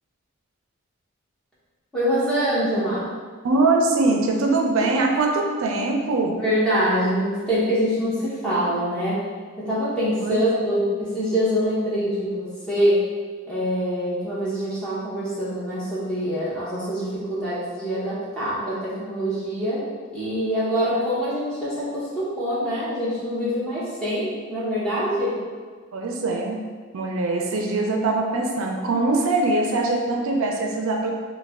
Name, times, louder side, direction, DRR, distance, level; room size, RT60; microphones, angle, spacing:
voice 1, 1.9-3.1 6.4-9.2 9.6-13.0 13.5-19.8 20.1-25.4, equal, 5° left, -10 dB, 0.8 m, -24 dB
voice 2, 3.4-6.4 10.2-10.4 25.9-26.6 26.9-31.1, right 2 dB, 80° right, 1 dB, 0.4 m, -22 dB
3.1 x 2.2 x 3.5 m, 1.5 s
head